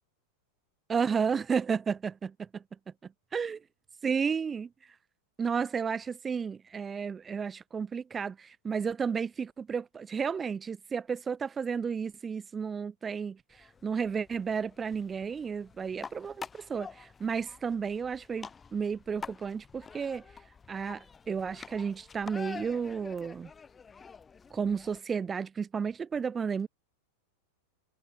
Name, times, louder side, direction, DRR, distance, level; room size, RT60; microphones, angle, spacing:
voice 1, 0.9-2.6 3.3-3.6 4.0-4.7 5.4-13.4 13.8-20.2 20.7-23.5 24.5-26.7, right 6 dB, 20° right, 2.0 m, -32 dB
sound 1, 13.5-25.0, left 5 dB, 15° left, 6.5 m, -48 dB
figure-of-eight pair, 90°, 0 cm